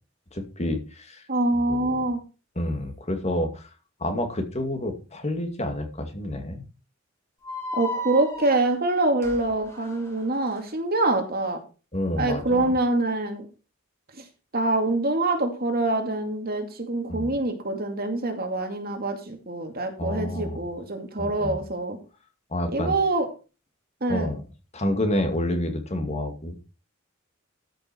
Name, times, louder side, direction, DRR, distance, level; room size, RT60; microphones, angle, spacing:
voice 1, 0.3-1.2 1.7-2.0 2.6-3.7 4.0-6.6 11.9-12.7 17.1-17.3 20.0-20.6 21.2-21.6 22.5-22.9 24.1-24.4 24.7-26.6, left 1 dB, 35° left, 5 dB, 2.3 m, -29 dB
voice 2, 1.3-2.2 7.7-11.6 12.2-13.5 14.1-14.2 14.5-22.0 22.7-23.3 24.0-24.3, right 2 dB, 50° right, 5 dB, 2.5 m, -25 dB
sound 1, 7.4-10.6, equal, 15° left, 3.5 m, -36 dB
13.5 x 6.6 x 4.6 m, 0.32 s
head